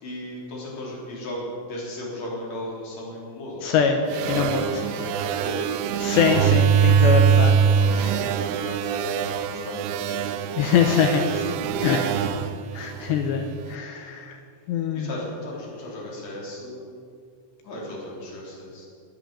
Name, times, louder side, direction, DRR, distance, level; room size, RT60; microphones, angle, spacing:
voice 1, 0.0-5.9 7.5-12.3 14.9-16.9 17.6-18.9, left 1 dB, 35° left, -4 dB, 4.4 m, -36 dB
voice 2, 3.6-4.0 4.3-4.6 6.0-7.6 10.6-11.4 11.8-12.0 12.8-14.3 14.7-15.1, left 7 dB, 80° left, 5 dB, 2.6 m, -23 dB
sound 1, 4.1-13.6, right 7 dB, 80° right, 3.0 m, -23 dB
22.5 x 7.6 x 6.9 m, 2.2 s
omnidirectional pair, 5.9 m